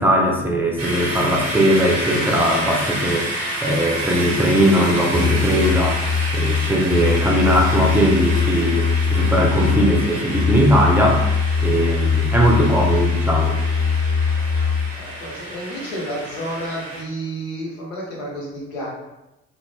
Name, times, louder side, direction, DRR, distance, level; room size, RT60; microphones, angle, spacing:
voice 1, 0.0-6.1 6.3-13.6, equal, 5° right, -1 dB, 0.6 m, -19 dB
sound 1, 0.8-17.0, right 1 dB, 85° right, 0.6 m, -29 dB
Musical instrument, 5.1-15.0, left 5 dB, 55° left, 1.3 m, -21 dB
voice 2, 14.9-18.9, right 1 dB, 80° left, -4 dB, 0.8 m, -30 dB
2.5 x 2.1 x 3.3 m, 0.97 s
figure-of-eight pair, 40°, 38 cm